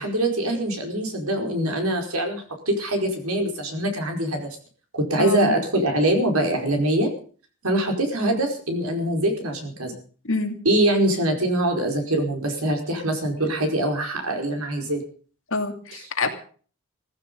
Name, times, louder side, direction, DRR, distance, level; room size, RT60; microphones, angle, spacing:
voice 1, 0.0-4.5 4.9-7.1 7.6-10.0 10.6-15.0, right 1 dB, 75° right, 3 dB, 4.8 m, -23 dB
voice 2, 5.2-5.6 10.2-10.6 15.5-16.3, left 3 dB, 60° left, 5 dB, 2.7 m, -26 dB
16.0 x 15.5 x 5.4 m, 0.43 s
head